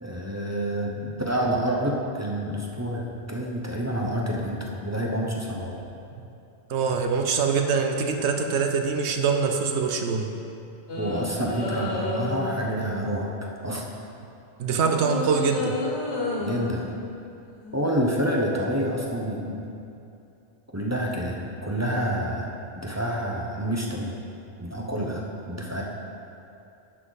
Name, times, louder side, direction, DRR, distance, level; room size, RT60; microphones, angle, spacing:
voice 1, 0.0-5.8 11.0-13.9 16.4-16.9 17.7-19.8 20.7-22.5 22.8-24.2 24.6-25.8, equal, 15° right, -2 dB, 0.7 m, -28 dB
voice 2, 6.7-10.3 14.6-15.8, right 5 dB, 85° right, 4 dB, 1.0 m, -24 dB
sound 1, 10.9-12.8 14.7-16.6 17.6-17.8, left 2 dB, 85° left, 1.6 m, -31 dB
11.0 x 6.0 x 4.0 m, 2.7 s
omnidirectional pair, 1.1 m